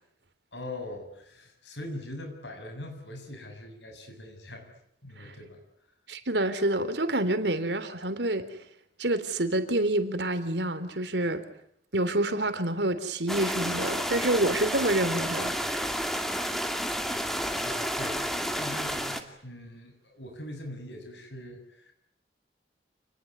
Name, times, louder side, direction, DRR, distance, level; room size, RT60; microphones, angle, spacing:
voice 1, 0.5-4.7 5.0-5.6 17.6-21.9, left 1 dB, 80° left, 5 dB, 6.9 m, -42 dB
voice 2, 6.1-8.5 9.0-11.4 11.9-16.0, right 1 dB, 75° right, 10 dB, 3.5 m, -28 dB
sound 1, 13.3-19.2, equal, ahead, 2.5 m, -30 dB
29.0 x 20.5 x 9.7 m, 0.73 s
head